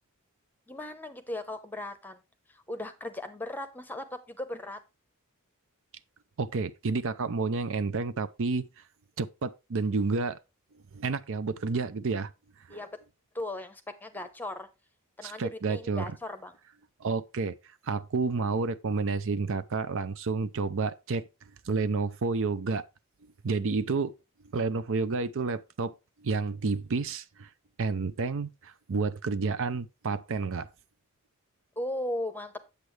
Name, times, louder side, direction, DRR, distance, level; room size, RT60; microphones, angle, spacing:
voice 1, 0.7-2.2 2.5-4.8 12.7-13.0 13.3-14.7 15.2-16.6 31.8-32.5, left 1 dB, 10° left, 0.8 m, -37 dB
voice 2, 6.4-8.7 9.2-10.4 10.9-12.3 12.7-12.8 15.2-16.1 17.0-17.6 17.8-21.3 21.7-22.8 23.4-24.1 24.5-25.9 26.2-27.5 27.8-30.7, right 4 dB, 60° right, 0.6 m, -30 dB
8.2 x 8.0 x 3.2 m
head